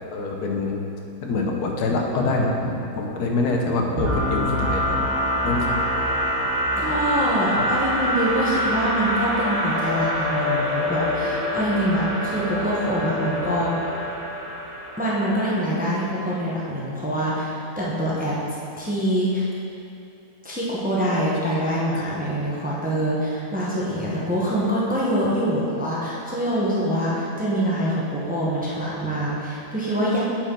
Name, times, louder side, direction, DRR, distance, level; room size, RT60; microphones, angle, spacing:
voice 1, 0.1-0.8 1.2-5.1 5.4-6.1 7.6-7.7, left 3 dB, 85° left, 0 dB, 1.3 m, -25 dB
sound 1, 4.0-15.7, equal, 65° right, 1.8 m, -25 dB
voice 2, 6.8-14.1 15.0-18.4 18.8-19.5 20.4-30.2, equal, 5° right, -7 dB, 0.8 m, -25 dB
9.0 x 4.6 x 3.8 m, 2.7 s
omnidirectional pair, 1.6 m